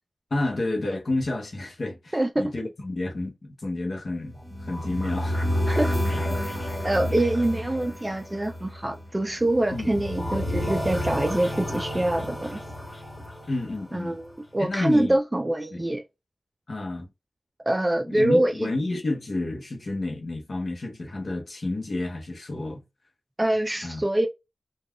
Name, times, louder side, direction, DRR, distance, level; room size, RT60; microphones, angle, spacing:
voice 1, 0.3-4.4 4.6-5.4 6.1-6.4 7.1-7.2 9.7-10.1 13.5-14.2 14.6-15.2 15.7-15.9 16.7-17.1 18.1-22.8 23.8-24.0, left 2 dB, 65° left, 0.7 m, -30 dB
voice 2, 2.1-2.5 5.7-6.1 6.8-12.6 13.9-16.0 17.7-18.7 23.4-24.3, right 1 dB, 25° right, 0.3 m, -25 dB
sound 1, 4.3-14.4, equal, 20° left, 1.3 m, -30 dB
3.5 x 2.2 x 2.2 m
cardioid pair, 45°, 0 cm